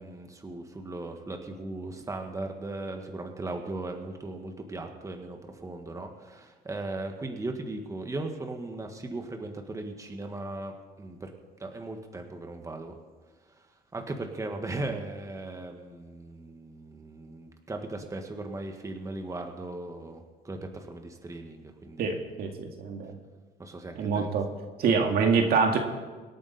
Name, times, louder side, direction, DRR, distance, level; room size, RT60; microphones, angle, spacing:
voice 1, 0.0-11.3 11.6-12.9 13.9-22.1 23.6-24.3, right 2 dB, 20° right, 4 dB, 1.6 m, -38 dB
voice 2, 22.0-23.2 24.0-24.5 24.8-25.8, right 5 dB, 65° right, 3 dB, 2.0 m, -25 dB
25.5 x 8.5 x 4.2 m, 1.3 s
cardioid pair, 110°, 17 cm